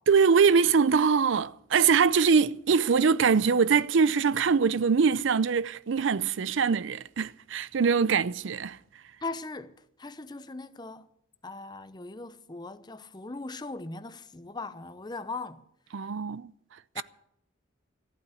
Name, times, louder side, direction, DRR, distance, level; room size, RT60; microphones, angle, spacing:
voice 1, 0.1-8.8 15.9-16.5 17.0-17.1, right 5 dB, 70° right, 0.5 m, -23 dB
voice 2, 9.2-9.7 10.0-11.1 11.4-15.6 16.9-17.0, left 3 dB, 20° left, 0.7 m, -39 dB
14.5 x 8.6 x 9.1 m
head